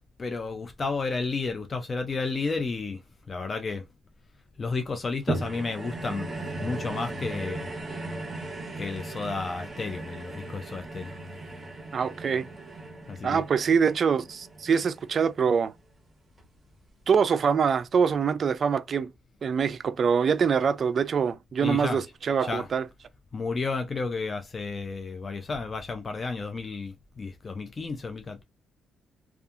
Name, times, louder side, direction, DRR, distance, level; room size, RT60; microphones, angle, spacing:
voice 1, 0.2-3.0 3.3-3.8 4.6-6.3 6.6-7.7 8.8-11.1 13.1-13.4 21.6-22.0 22.4-22.7 23.3-28.4, left 4 dB, 35° left, 0.4 m, -32 dB
sound 1, 5.3-15.8 16.4-16.5, right 2 dB, 25° right, 1.1 m, -37 dB
voice 2, 11.9-12.5 13.2-15.7 17.1-19.1 19.4-22.9, right 6 dB, 50° right, 0.3 m, -24 dB
2.6 x 2.3 x 2.4 m
cardioid pair, 90°, 0 cm